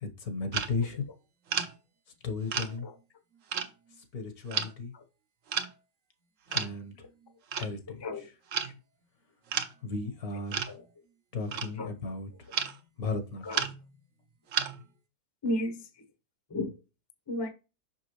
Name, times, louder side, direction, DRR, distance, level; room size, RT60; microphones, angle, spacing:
voice 1, 0.0-1.1 2.2-2.9 4.1-4.9 6.5-6.9 7.5-8.0 9.8-10.7 11.3-12.5 13.0-13.4, left 3 dB, 65° left, 1.7 m, -35 dB
sound 1, 0.5-0.7 1.5-1.7 2.5-2.8 3.5-3.7 4.5-4.7 5.5-5.7 6.5-6.7 7.5-7.7 8.5-8.7 9.5-9.7 10.5-10.8 11.5-11.9 12.5-12.8 13.5-14.0 14.5-14.9, right 7 dB, 60° right, 1.1 m, -32 dB
voice 2, 15.4-15.9 16.5-16.8 17.3-17.5, left 1 dB, 20° left, 0.7 m, -33 dB
5.9 x 5.8 x 3.0 m
omnidirectional pair, 1.7 m